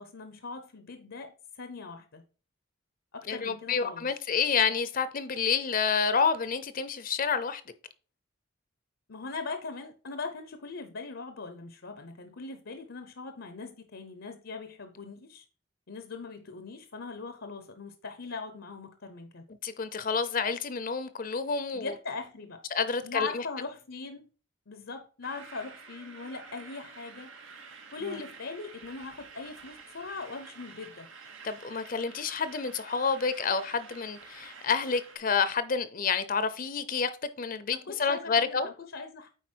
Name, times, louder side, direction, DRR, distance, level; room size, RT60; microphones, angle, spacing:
voice 1, 0.0-2.2 3.1-4.1 9.1-15.5 15.9-19.5 21.7-22.6 23.0-24.3 24.7-27.3 27.9-31.1 37.7-39.3, left 4 dB, 75° left, 0.8 m, -40 dB
voice 2, 3.3-7.6 19.6-21.9 22.7-23.4 28.1-28.2 31.4-37.1 37.4-38.7, left 5 dB, 45° left, 0.6 m, -29 dB
sound 1, 25.2-35.2, right 5 dB, 80° right, 1.3 m, -49 dB
9.2 x 3.9 x 4.5 m
head